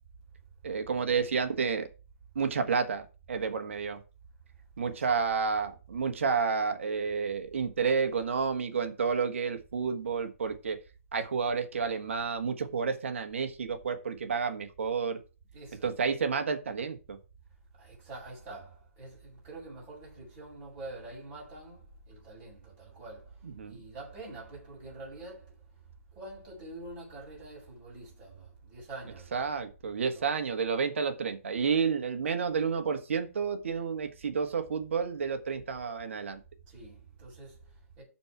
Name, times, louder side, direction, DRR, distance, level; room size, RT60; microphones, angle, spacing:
voice 1, 0.6-1.9 2.3-4.0 4.8-10.8 11.1-15.2 15.8-17.2 23.6-23.8 29.3-36.4, right 5 dB, 60° right, 1.7 m, -30 dB
voice 2, 15.5-15.9 17.7-25.8 26.1-29.4 30.1-30.3 36.7-38.0, right 2 dB, 25° right, 6.0 m, -46 dB
13.5 x 4.5 x 4.6 m
hypercardioid pair, 155°, 8 cm